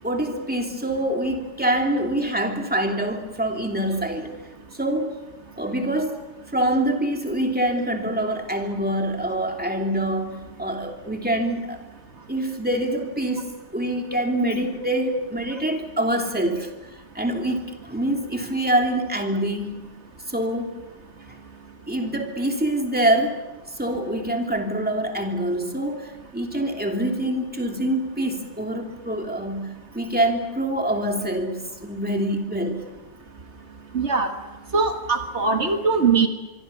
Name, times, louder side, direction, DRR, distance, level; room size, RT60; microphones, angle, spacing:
voice 1, 0.0-4.4 4.7-5.2 5.6-6.2 6.5-11.8 12.3-16.7 17.1-19.9 20.3-20.7 21.3-21.4 21.9-23.4 23.7-32.8, right 1 dB, 5° right, 3 dB, 2.9 m, -25 dB
voice 2, 33.9-34.3 34.7-36.3, right 5 dB, 60° right, 6 dB, 1.7 m, -21 dB
25.0 x 24.0 x 7.0 m, 1.1 s
omnidirectional pair, 1.3 m